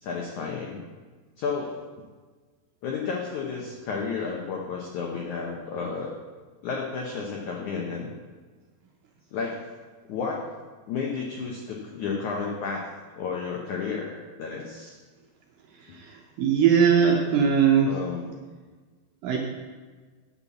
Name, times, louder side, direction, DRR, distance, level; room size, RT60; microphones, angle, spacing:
voice 1, 0.0-0.8 1.4-1.8 2.8-6.1 6.6-8.1 9.3-9.6 10.1-10.4 10.9-12.8 13.2-15.0 15.9-16.0 17.9-18.3, left 5 dB, 80° left, -1 dB, 1.7 m, -32 dB
voice 2, 16.4-17.9 19.2-19.4, right 7 dB, 75° right, 0 dB, 2.1 m, -19 dB
8.9 x 5.7 x 7.1 m, 1.4 s
omnidirectional pair, 4.8 m